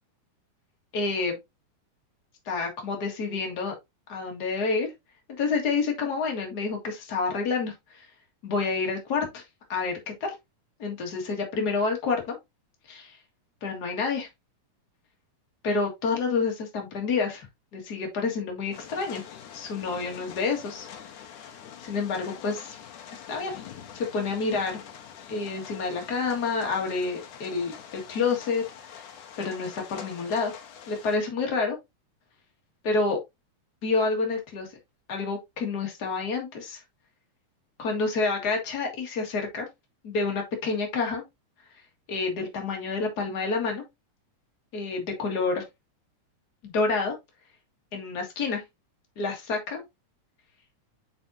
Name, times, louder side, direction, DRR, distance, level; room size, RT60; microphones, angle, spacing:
voice 1, 0.9-1.4 2.5-3.7 4.1-4.9 5.4-8.1 8.4-9.4 9.7-10.4 10.8-12.4 12.9-13.2 13.6-14.3 15.6-17.5 17.7-19.2 19.5-20.9 21.8-22.8 23.1-23.6 23.9-24.8 25.3-28.6 28.9-29.1 29.4-30.5 30.9-31.8 32.8-33.2 33.8-34.7 35.1-36.8 37.8-39.7 40.0-41.2 42.1-43.8 44.7-45.6 46.6-47.2 47.9-48.6 49.2-49.8, left 4 dB, 35° left, 2.1 m, -28 dB
sound 1, 18.7-31.2, left 8 dB, 80° left, 2.6 m, -45 dB
7.5 x 5.4 x 2.7 m
omnidirectional pair, 3.5 m